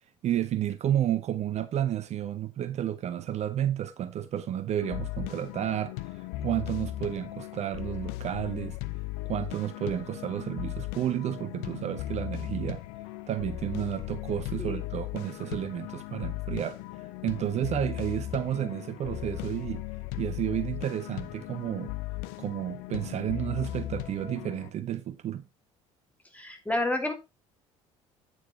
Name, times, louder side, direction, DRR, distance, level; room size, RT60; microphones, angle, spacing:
voice 1, 0.2-8.8 9.2-12.8 13.3-16.8 17.2-19.8 20.2-21.9 22.4-25.4, right 11 dB, 40° right, 0.7 m, -31 dB
sound 1, 4.8-24.7, left 15 dB, 60° left, 0.6 m, -37 dB
voice 2, 26.3-27.1, left 1 dB, 10° left, 2.6 m, -30 dB
8.7 x 7.7 x 3.1 m
figure-of-eight pair, 55°, 17 cm